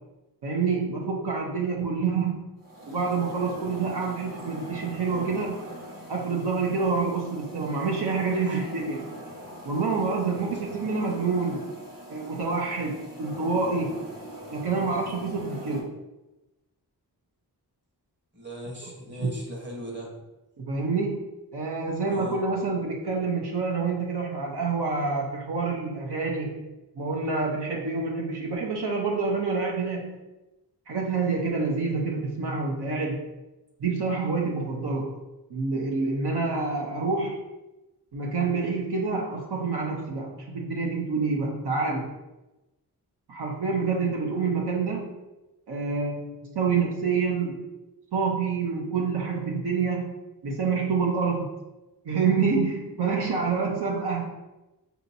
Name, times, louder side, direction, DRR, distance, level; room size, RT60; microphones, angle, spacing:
voice 1, 0.4-2.5 2.9-5.6 6.1-9.1 9.7-11.7 12.1-13.9 14.5-15.9 19.2-19.3 20.6-21.2 21.5-26.6 27.0-30.1 30.9-33.3 33.8-35.1 35.5-37.4 38.1-42.1 43.3-45.1 45.7-47.6 48.1-50.2 50.4-51.5 52.0-54.3, right 4 dB, 75° right, -2 dB, 0.8 m, -27 dB
sound 1, 2.6-15.8, equal, 60° right, 1.4 m, -42 dB
voice 2, 8.3-8.6 18.3-20.1 22.1-22.4, equal, 30° right, -2 dB, 1.2 m, -39 dB
5.6 x 2.7 x 2.7 m, 1.0 s
wide cardioid pair, 75°, 40 cm